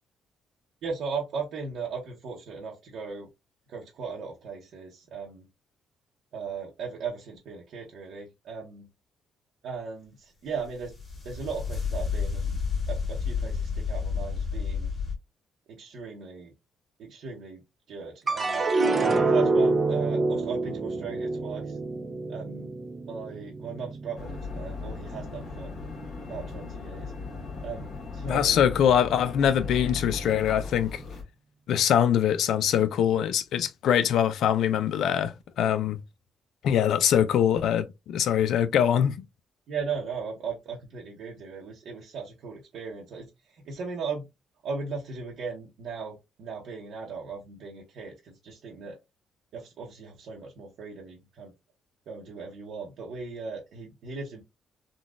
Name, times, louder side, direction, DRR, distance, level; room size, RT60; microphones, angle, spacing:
voice 1, 0.8-3.3 3.7-5.4 6.3-8.9 9.6-10.9 11.2-12.6 12.9-14.9 15.7-16.5 17.0-17.6 17.9-18.7 19.3-21.8 22.3-22.7 23.0-25.7 26.3-27.1 27.6-28.6 39.7-44.2 44.6-49.0 49.5-51.5 52.1-54.4, right 5 dB, 75° right, 0.9 m, -37 dB
sound 1, 10.6-15.1, left 5 dB, 30° left, 1.7 m, -30 dB
sound 2, 18.3-24.7 25.1-25.8, right 3 dB, 35° right, 0.6 m, -27 dB
sound 3, 24.2-31.2, left 4 dB, 60° left, 1.2 m, -37 dB
voice 2, 28.3-31.0 31.7-36.0 36.6-39.2, left 9 dB, 75° left, 0.4 m, -23 dB
3.8 x 2.3 x 2.4 m
cardioid pair, 90°, 0 cm